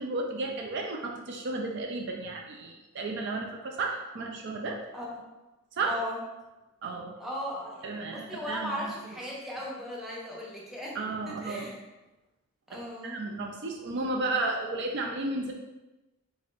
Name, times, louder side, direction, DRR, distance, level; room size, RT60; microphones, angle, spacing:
voice 1, 0.0-4.8 5.7-5.9 6.8-7.1 7.8-8.8 10.9-11.7 13.0-15.5, right 2 dB, 55° right, 1 dB, 0.4 m, -33 dB
voice 2, 5.8-6.2 7.2-11.0 11.3-11.7 12.7-13.2, equal, ahead, -5 dB, 0.8 m, -37 dB
4.0 x 3.7 x 2.5 m, 1.1 s
head